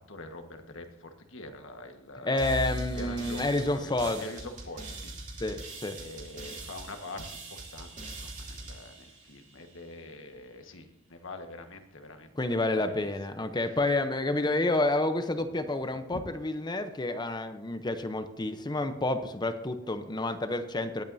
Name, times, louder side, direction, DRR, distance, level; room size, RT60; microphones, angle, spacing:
voice 1, 0.1-5.1 5.9-12.3 12.6-13.1 13.6-13.8 16.1-16.2, left 2 dB, 90° left, 5 dB, 1.5 m, -44 dB
voice 2, 2.2-4.2 5.4-6.0 12.3-21.0, left 2 dB, 20° left, 8 dB, 0.7 m, -29 dB
sound 1, 2.4-9.9, right 1 dB, 40° right, 3.0 m, -41 dB
19.5 x 8.8 x 2.7 m, 0.84 s
head